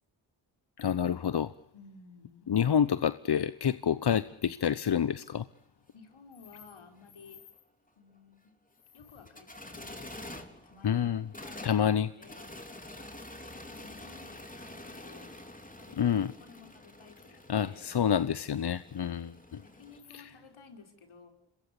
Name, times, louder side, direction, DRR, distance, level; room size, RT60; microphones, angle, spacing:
voice 1, 0.8-1.5 2.5-5.5 10.8-11.2 11.6-12.1 16.0-16.3 17.5-19.6 20.1-20.2, left 8 dB, 50° left, 15 dB, 1.0 m, -28 dB
voice 2, 1.7-2.5 5.9-7.4 8.0-8.6 8.9-10.1 10.6-12.6 13.5-18.0 19.6-21.3, left 4 dB, 70° left, 4 dB, 5.5 m, -55 dB
sound 1, 4.7-4.8 5.0-5.1 7.5-7.6 9.0-20.0, left 1 dB, 15° left, 3.9 m, -47 dB
27.0 x 21.5 x 7.2 m, 0.76 s
cardioid pair, 50°, 49 cm